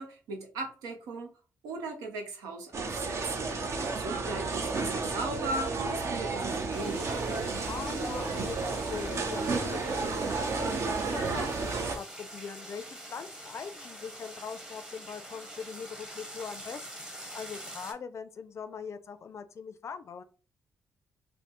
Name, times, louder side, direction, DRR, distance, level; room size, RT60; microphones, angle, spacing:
voice 1, 0.0-1.3 1.6-3.6 3.9-7.7, right 2 dB, 90° right, 3 dB, 0.7 m, -38 dB
sound 1, 2.7-12.0, right 3 dB, 50° right, 0.6 m, -32 dB
sound 2, 6.7-17.9, right 1 dB, 10° right, 0.9 m, -45 dB
voice 2, 7.7-20.2, left 6 dB, 50° left, 11 dB, 0.4 m, -42 dB
3.2 x 2.1 x 3.0 m, 0.36 s
supercardioid pair, 60°, 6 cm